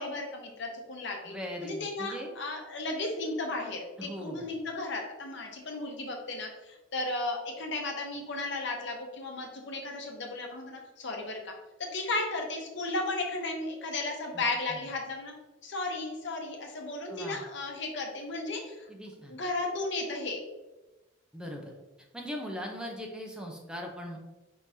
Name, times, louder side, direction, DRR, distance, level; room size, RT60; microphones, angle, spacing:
voice 1, 0.0-1.3 1.6-11.5 11.9-15.3 15.6-18.9 19.3-20.4, left 2 dB, 70° left, 1 dB, 0.9 m, -34 dB
voice 2, 1.3-2.3 4.0-4.5 14.3-14.4 14.7-14.9 17.1-17.4 18.9-19.4 21.3-21.7 22.1-24.2, equal, 5° right, 0 dB, 0.7 m, -40 dB
4.6 x 3.7 x 2.8 m, 1.1 s
head